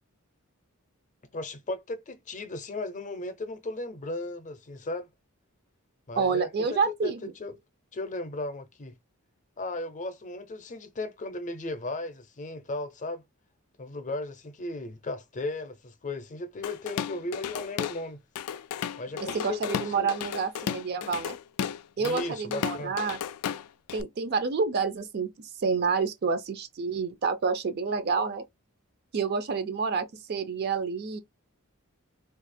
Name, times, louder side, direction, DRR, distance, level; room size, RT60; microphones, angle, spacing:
voice 1, 1.3-5.1 6.1-7.6 7.9-8.9 9.6-13.2 13.8-18.2 19.0-20.1 22.0-22.9, left 2 dB, 35° left, 0.6 m, -36 dB
voice 2, 6.2-7.3 19.2-21.4 22.0-23.2 23.9-28.4 29.1-31.2, right 5 dB, 50° right, 0.4 m, -28 dB
Drum kit / Drum, 16.6-18.0 18.4-24.0, left 8 dB, 90° left, 0.3 m, -34 dB
2.7 x 2.4 x 4.2 m
head